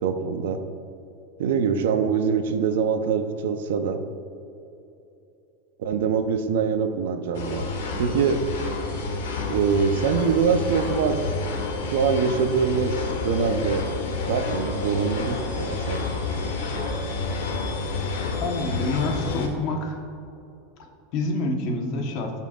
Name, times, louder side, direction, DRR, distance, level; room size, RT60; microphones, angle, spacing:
voice 1, 0.0-0.6 1.4-4.0 5.8-7.6 8.0-8.4 9.5-11.2 11.9-13.9 14.3-16.1, right 6 dB, 85° right, 7 dB, 0.7 m, -24 dB
sound 1, 7.3-19.5, left 3 dB, 90° left, 1.5 m, -29 dB
voice 2, 18.3-20.0 21.1-22.3, left 2 dB, 45° left, 2 dB, 1.2 m, -27 dB
16.0 x 5.7 x 2.5 m, 2.8 s
supercardioid pair, 160°, 0 cm